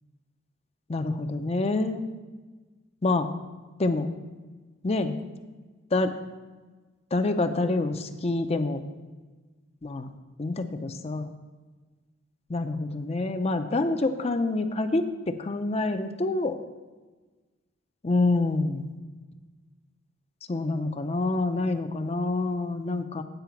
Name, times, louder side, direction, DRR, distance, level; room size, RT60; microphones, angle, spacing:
voice 1, 0.9-2.0 3.0-3.3 3.8-4.1 4.8-5.2 5.9-6.2 7.1-8.8 9.8-10.1 10.4-11.3 12.5-16.6 18.0-18.9 20.5-23.2, left 2 dB, 30° left, 8 dB, 0.5 m, -27 dB
9.1 x 4.8 x 7.0 m, 1.3 s
head